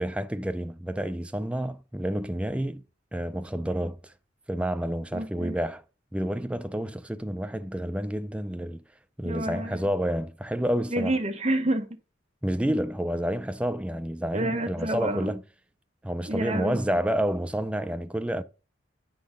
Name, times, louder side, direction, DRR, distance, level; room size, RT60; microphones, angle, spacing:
voice 1, 0.0-2.8 3.1-4.1 4.5-5.8 6.1-8.8 9.2-11.2 12.4-15.4 16.0-18.4, equal, 5° right, 0.4 m, -29 dB
voice 2, 5.1-5.5 9.2-9.9 10.9-11.9 14.3-15.3 16.3-16.8, right 1 dB, 35° right, 1.1 m, -29 dB
9.4 x 4.0 x 5.1 m
head